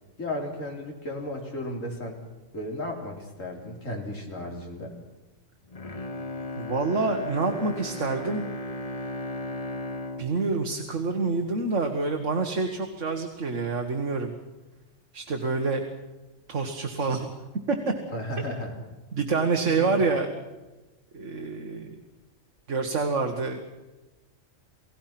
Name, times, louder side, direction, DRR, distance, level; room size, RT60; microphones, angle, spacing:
voice 1, 0.2-2.2 2.5-4.9 18.1-18.7 19.6-20.0, left 1 dB, 75° left, 1 dB, 4.2 m, -34 dB
Bowed string instrument, 5.7-11.9 12.3-12.4, left 1 dB, 30° left, 1.0 m, -36 dB
voice 2, 6.6-8.5 10.2-14.3 15.1-15.9 16.5-17.4 17.7-17.8 18.4-18.5 19.1-20.3 21.1-22.0 22.7-23.6, right 3 dB, 65° right, 4 dB, 2.0 m, -27 dB
30.0 x 17.5 x 6.0 m, 1.1 s
omnidirectional pair, 1.3 m